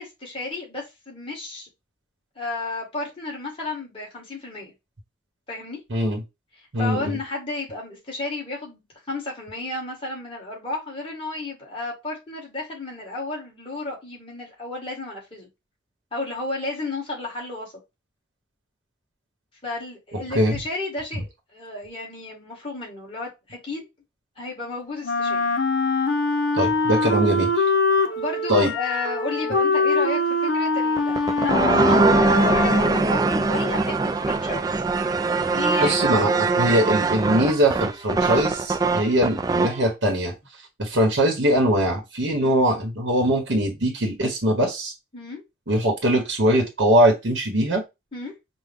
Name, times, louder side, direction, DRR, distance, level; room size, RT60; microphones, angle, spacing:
voice 1, 0.0-1.7 2.4-4.7 5.5-5.8 6.8-15.5 16.1-17.7 19.6-23.9 24.4-25.4 28.2-34.7 35.5-36.2 42.4-42.7 45.1-45.4 48.1-48.3, left 2 dB, 30° left, -3 dB, 1.9 m, -32 dB
voice 2, 5.9-6.2 6.7-7.2 20.3-20.6 26.5-27.6 28.5-28.7 35.8-40.3 40.8-44.9 45.7-47.8, equal, 85° right, 1 dB, 1.2 m, -21 dB
Wind instrument woodwind instrument, 25.0-33.2, left 3 dB, 75° left, 0.7 m, -23 dB
sound 1, 31.0-39.8, right 3 dB, 20° right, 0.3 m, -22 dB
5.3 x 2.2 x 3.5 m, 0.22 s
head